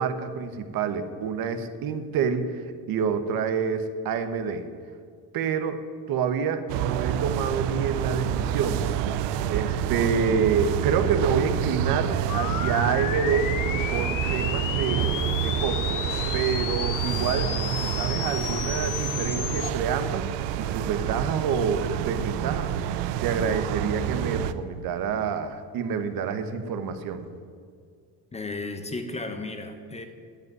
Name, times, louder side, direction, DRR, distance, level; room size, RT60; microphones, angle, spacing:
voice 1, 0.0-4.7 5.3-5.8 6.1-8.8 9.5-13.5 13.9-16.0 16.3-17.5 17.8-20.2 20.6-27.3, right 6 dB, 55° right, 9 dB, 1.2 m, -28 dB
sound 1, 6.7-24.5, right 10 dB, 85° right, 0.8 m, -28 dB
sound 2, 12.3-19.7, left 10 dB, 50° left, 0.9 m, -32 dB
voice 2, 28.3-30.1, left 2 dB, 15° left, 7 dB, 0.8 m, -34 dB
10.5 x 8.2 x 9.3 m, 2.1 s
cardioid pair, 155°, 41 cm